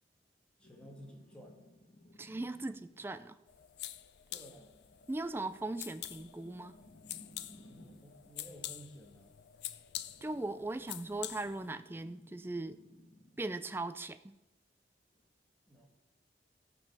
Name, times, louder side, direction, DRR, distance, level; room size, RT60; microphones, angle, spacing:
sound 1, 0.6-3.1 4.7-8.2 10.0-13.6 15.2-15.3, left 1 dB, 40° left, 1.4 m, -60 dB
voice 1, 0.6-1.6 4.3-4.8 7.7-9.3 15.7-15.9, equal, 5° left, 0 dB, 1.7 m, -54 dB
voice 2, 2.2-3.4 5.1-6.7 10.2-12.8 13.4-14.4, right 2 dB, 15° right, 12 dB, 0.3 m, -39 dB
sound 2, 3.5-11.8, left 13 dB, 70° left, 0.4 m, -47 dB
14.5 x 5.5 x 5.9 m, 0.98 s
head